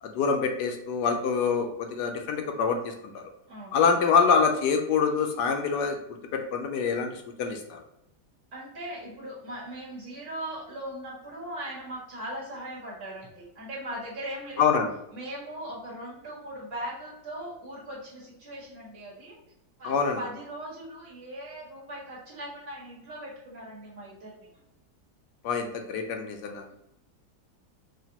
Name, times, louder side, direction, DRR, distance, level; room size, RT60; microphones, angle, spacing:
voice 1, 0.0-3.2 3.7-6.0 6.3-7.8 14.6-14.9 19.8-20.2 25.4-26.6, left 5 dB, 80° left, 4 dB, 1.2 m, -25 dB
voice 2, 8.5-14.6 15.1-19.4 19.8-24.5, right 1 dB, 40° right, -7 dB, 1.8 m, -39 dB
5.0 x 2.6 x 2.8 m, 0.85 s
omnidirectional pair, 1.8 m